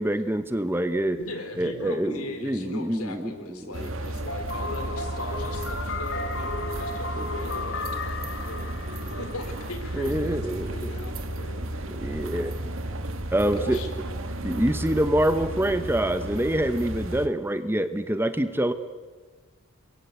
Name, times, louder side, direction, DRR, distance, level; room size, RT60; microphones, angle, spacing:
voice 1, 0.0-1.2 1.6-3.9 7.1-7.3 9.9-10.9 11.9-12.5 13.3-13.8 14.4-18.7, right 1 dB, 10° right, 10 dB, 0.9 m, -26 dB
voice 2, 1.2-11.8 13.4-13.9, left 2 dB, 85° left, 8 dB, 3.8 m, -39 dB
sound 1, 3.7-17.3, right 1 dB, 65° right, 1.9 m, -33 dB
sound 2, 4.3-10.1, left 3 dB, 55° left, 2.1 m, -34 dB
27.5 x 22.5 x 8.4 m, 1.4 s
head